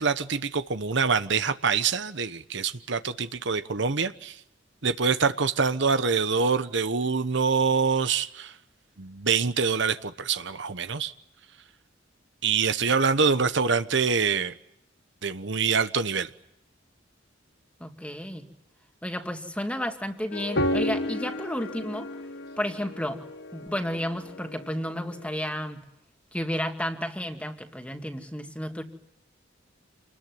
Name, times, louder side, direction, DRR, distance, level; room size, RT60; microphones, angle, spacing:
voice 1, 0.0-4.4 4.8-8.5 9.0-11.1 12.4-14.5 15.2-16.3, right 5 dB, 65° right, 11 dB, 1.1 m, -25 dB
voice 2, 17.8-18.5 19.0-22.1 22.6-23.2 23.5-25.8 26.3-28.8, equal, 5° left, 5 dB, 2.2 m, -32 dB
sound 1, 20.3-25.3, left 1 dB, 65° left, 1.6 m, -32 dB
28.0 x 20.5 x 9.5 m, 0.76 s
head